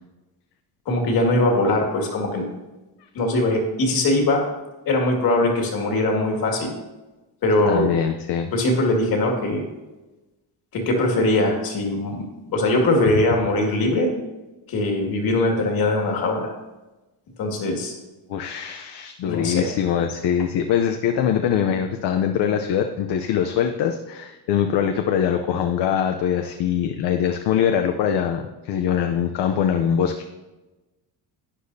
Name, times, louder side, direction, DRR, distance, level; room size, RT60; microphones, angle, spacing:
voice 1, 0.9-2.5 3.1-4.4 4.9-6.7 7.4-7.9 8.5-9.6 10.7-12.2 12.5-14.1 14.7-16.5 17.4-17.9 19.2-19.7, left 2 dB, 55° left, 1 dB, 2.2 m, -21 dB
voice 2, 7.7-8.5 18.3-30.3, left 8 dB, 70° left, 5 dB, 0.7 m, -23 dB
12.0 x 9.9 x 2.7 m, 1.1 s
cardioid pair, 160°, 42 cm